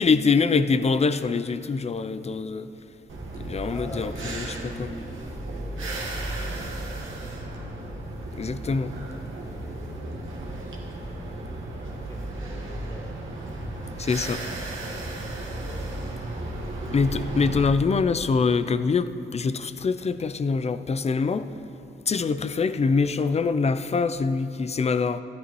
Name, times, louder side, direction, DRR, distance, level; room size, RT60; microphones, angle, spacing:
voice 1, 0.0-2.7 3.4-4.9 8.3-8.9 14.0-14.4 16.9-21.5 22.1-25.2, left 4 dB, 35° left, 12 dB, 0.4 m, -24 dB
sound 1, 3.1-17.7, right 2 dB, 80° right, 1.5 m, -34 dB
voice 2, 3.3-7.4 9.3-11.6 11.9-13.2 15.4-16.4, equal, 15° left, -1 dB, 1.8 m, -45 dB
13.5 x 11.5 x 3.1 m, 2.9 s
cardioid pair, 65°, 20 cm